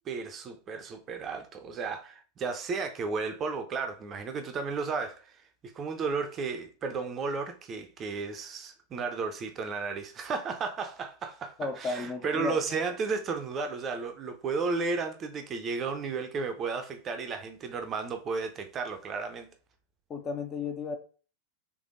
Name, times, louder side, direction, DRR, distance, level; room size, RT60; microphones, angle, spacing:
voice 1, 0.0-19.5, right 4 dB, 25° right, 0.4 m, -33 dB
voice 2, 11.6-12.8 20.1-21.0, left 4 dB, 25° left, 0.5 m, -34 dB
3.4 x 3.3 x 2.5 m
figure-of-eight pair, 90°, 0 cm